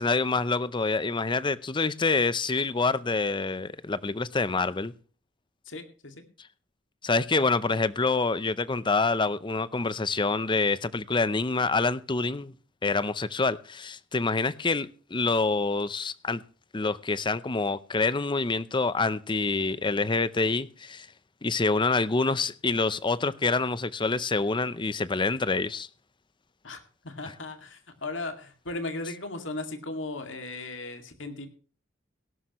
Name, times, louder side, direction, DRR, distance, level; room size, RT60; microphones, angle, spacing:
voice 1, 0.0-4.9 7.0-12.5 12.8-16.4 16.7-21.1 21.4-25.9, left 3 dB, 25° left, 0.6 m, -26 dB
voice 2, 5.7-6.2 26.6-31.5, left 2 dB, 80° left, 2.3 m, -37 dB
17.5 x 12.0 x 3.1 m
head